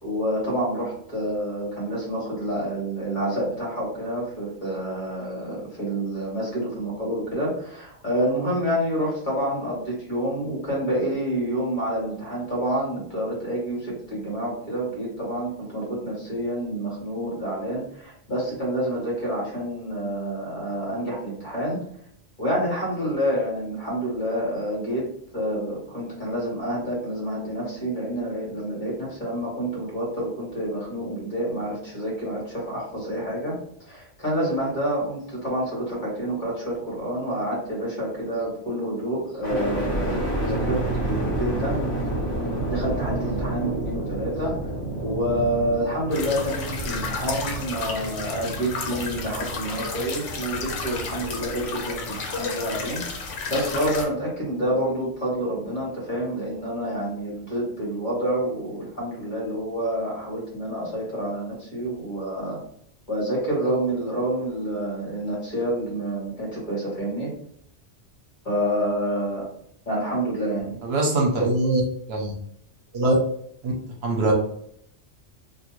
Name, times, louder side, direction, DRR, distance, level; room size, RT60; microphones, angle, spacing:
voice 1, 0.0-21.8 22.4-25.0 25.3-33.5 33.8-41.8 42.6-44.5 45.0-53.0 53.5-62.6 63.1-67.3 68.4-69.5 69.8-70.8, equal, 40° left, -5 dB, 1.3 m, -28 dB
sound 1, 39.4-53.4 53.9-54.7, right 1 dB, 25° left, 1.2 m, -30 dB
sound 2, 46.1-54.0, left 4 dB, 90° left, 1.0 m, -32 dB
voice 2, 70.8-71.8 72.1-72.3 72.9-73.1 73.6-73.7 74.0-74.3, right 2 dB, 65° right, 0 dB, 0.9 m, -22 dB
2.5 x 2.4 x 3.0 m, 0.68 s
omnidirectional pair, 1.2 m